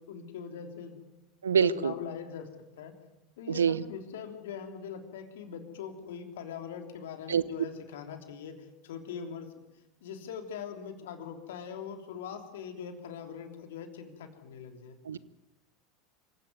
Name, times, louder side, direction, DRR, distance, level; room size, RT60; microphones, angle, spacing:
voice 1, 0.1-1.0 1.6-2.9 3.4-9.5 10.0-15.0, left 7 dB, 70° left, 6 dB, 3.4 m, -42 dB
voice 2, 1.4-1.9 3.6-3.7 7.3-7.4 15.1-15.2, right 7 dB, 80° right, 19 dB, 0.9 m, -24 dB
25.5 x 16.5 x 9.5 m, 0.94 s
figure-of-eight pair, 80°, 0 cm